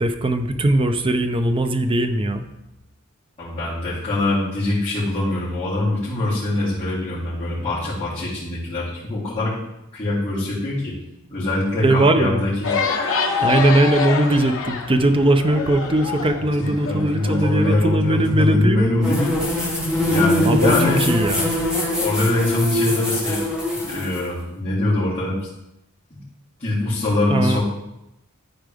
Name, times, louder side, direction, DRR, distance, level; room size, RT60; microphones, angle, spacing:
voice 1, 0.0-2.4 11.8-12.4 13.4-18.8 20.5-20.7 21.0-21.5 27.3-27.6, right 1 dB, 25° right, 7 dB, 0.6 m, -19 dB
voice 2, 3.4-9.5 9.9-11.0 11.3-12.7 16.6-19.3 19.7-19.8 20.0-21.0 22.0-23.4 23.7-25.5 26.1-26.2 26.6-27.6, left 2 dB, 30° left, -14 dB, 3.3 m, -23 dB
sound 1, 12.6-17.7, left 4 dB, 60° left, 1.0 m, -26 dB
sound 2, 19.0-24.2, left 1 dB, 5° right, 1.9 m, -22 dB
13.0 x 4.7 x 3.5 m, 0.88 s
head